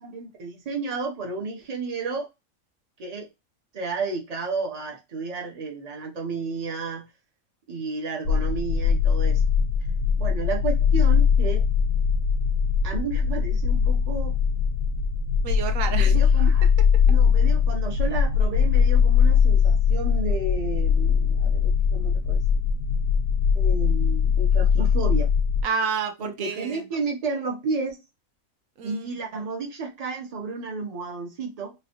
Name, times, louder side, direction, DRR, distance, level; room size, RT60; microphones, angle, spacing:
voice 1, 0.0-2.3 3.0-3.3 3.7-7.1 7.7-9.4 10.2-11.7 12.8-14.3 15.9-22.6 23.5-25.3 26.2-28.0 28.8-31.7, right 4 dB, 35° right, 0.7 m, -32 dB
sound 1, 8.3-25.6, left 6 dB, 70° left, 0.9 m, -21 dB
voice 2, 15.4-16.2 25.6-26.8 28.8-29.1, right 6 dB, 70° right, 1.0 m, -29 dB
3.1 x 2.5 x 2.9 m
omnidirectional pair, 1.6 m